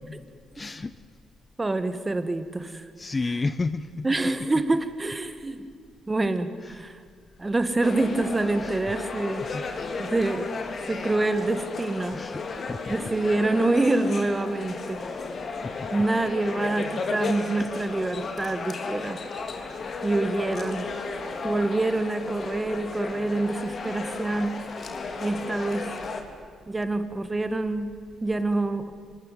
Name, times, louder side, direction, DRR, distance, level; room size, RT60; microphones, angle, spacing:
voice 1, 0.5-0.9 3.0-4.0 8.6-8.8 9.5-9.6 12.1-12.9 15.6-15.9 17.6-17.7, left 3 dB, 25° left, 14 dB, 0.8 m, -31 dB
voice 2, 1.6-2.9 4.0-5.6 6.1-7.0 7.4-9.4 10.0-10.5 10.9-12.2 12.9-15.0 15.9-19.2 20.0-20.9 21.4-24.6 25.2-25.9 26.7-28.9, right 2 dB, 20° right, 11 dB, 2.0 m, -26 dB
sound 1, 7.8-26.2, left 4 dB, 45° left, 3.3 m, -34 dB
25.0 x 20.5 x 9.5 m, 2.2 s
cardioid pair, 90°, 0 cm